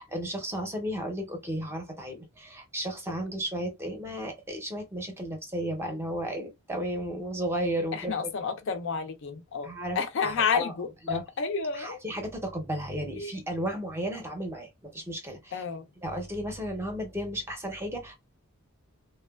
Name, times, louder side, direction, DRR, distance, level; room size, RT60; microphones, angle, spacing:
voice 1, 0.0-8.1 9.6-10.0 10.2-10.7 11.1-11.2 11.7-15.6 16.0-18.2, right 1 dB, 10° right, 0.6 m, -34 dB
voice 2, 7.9-9.7 10.0-12.0 13.2-13.4 15.5-15.8, left 5 dB, 55° left, 0.4 m, -30 dB
3.0 x 2.1 x 2.2 m
head